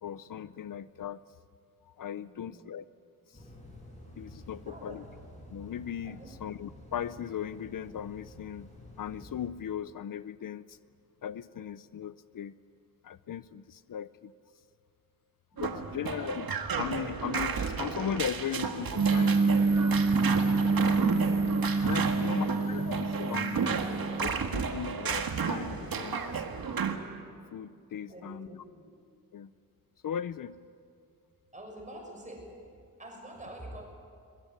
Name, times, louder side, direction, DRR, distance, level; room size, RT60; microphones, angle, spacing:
voice 1, 0.0-1.2 1.9-2.9 3.3-3.4 4.2-5.0 5.5-8.7 9.0-10.8 11.2-12.5 13.0-14.3 15.6-16.5 16.8-19.7 20.8-21.2 21.8-23.6 24.2-26.4 27.5-28.6 29.3-29.5 30.0-30.6, left 9 dB, 70° left, 16 dB, 0.6 m, -38 dB
voice 2, 2.1-2.7 4.5-5.0 6.0-6.3 15.5-16.2 22.0-22.5 23.0-23.9 28.0-28.8 31.5-32.4 33.0-33.8, right 1 dB, 20° right, 1 dB, 6.2 m, -48 dB
sound 1, 3.3-9.5, left 1 dB, 20° left, 7.1 m, -50 dB
sound 2, 15.6-27.0, right 5 dB, 85° right, 1.8 m, -33 dB
sound 3, 19.0-24.3, right 3 dB, 50° right, 1.3 m, -27 dB
21.5 x 21.0 x 9.4 m, 2.3 s
wide cardioid pair, 150°, 34 cm